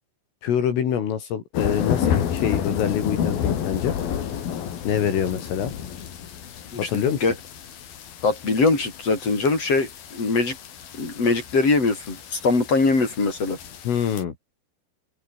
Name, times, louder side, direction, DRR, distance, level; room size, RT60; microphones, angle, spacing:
voice 1, 0.4-4.0 4.9-5.7 6.8-7.2 13.9-14.3, left 8 dB, 75° left, 6.2 m, -25 dB
sound 1, 1.5-14.2, left 9 dB, 50° left, 3.9 m, -30 dB
voice 2, 6.7-7.3 8.2-10.6 11.0-13.6, left 3 dB, 30° left, 8.9 m, -22 dB
open air
omnidirectional pair, 5.9 m